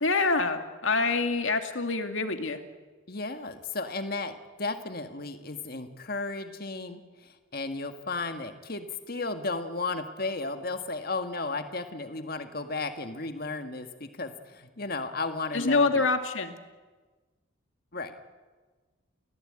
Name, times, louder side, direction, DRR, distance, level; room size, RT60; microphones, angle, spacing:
voice 1, 0.0-2.6 15.5-16.5, left 3 dB, 70° left, 6 dB, 2.2 m, -26 dB
voice 2, 3.1-16.1 17.9-18.1, left 3 dB, 45° left, 7 dB, 1.8 m, -34 dB
30.0 x 16.5 x 8.9 m, 1.3 s
head